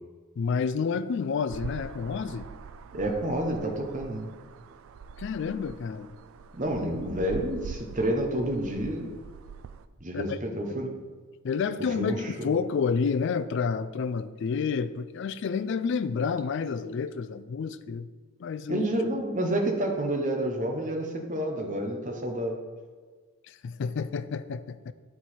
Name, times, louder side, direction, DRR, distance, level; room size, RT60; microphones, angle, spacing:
voice 1, 0.4-2.5 5.2-6.1 10.1-10.4 10.7-10.8 11.4-18.1 18.4-18.9 23.5-24.9, left 5 dB, 55° left, 13 dB, 0.3 m, -29 dB
sound 1, 1.5-9.9, right 6 dB, 70° right, 0.3 m, -44 dB
voice 2, 2.9-4.3 6.6-9.1 10.0-11.0 12.0-12.5 18.7-22.6, right 1 dB, 35° right, 2 dB, 0.8 m, -29 dB
8.4 x 4.6 x 4.2 m, 1.5 s
head